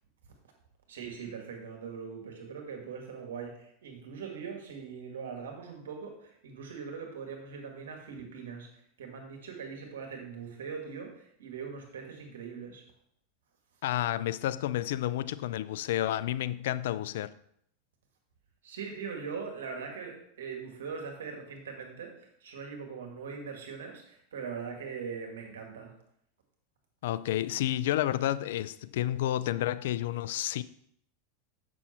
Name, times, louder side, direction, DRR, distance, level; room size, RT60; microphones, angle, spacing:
voice 1, 0.9-12.9 18.6-25.9, right 6 dB, 75° right, 2.0 m, -41 dB
voice 2, 13.8-17.3 27.0-30.6, left 13 dB, 70° left, 0.4 m, -30 dB
7.1 x 6.2 x 4.4 m
hypercardioid pair, 95°, 0 cm